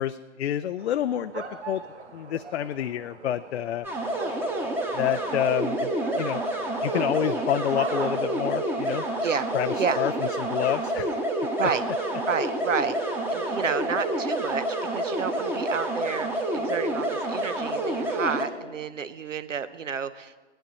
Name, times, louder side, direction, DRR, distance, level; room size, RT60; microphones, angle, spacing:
voice 1, 0.0-1.8 2.1-3.9 4.9-6.4 6.8-9.1 9.5-11.2, left 11 dB, 60° left, 11 dB, 0.4 m, -28 dB
sound 1, 0.8-8.4, right 4 dB, 70° right, 2.4 m, -40 dB
sound 2, 3.8-18.5, right 1 dB, 5° right, 1.0 m, -28 dB
voice 2, 12.3-20.5, right 6 dB, 85° right, 13 dB, 0.9 m, -30 dB
18.5 x 11.5 x 4.1 m, 1.3 s
hypercardioid pair, 140°, 37 cm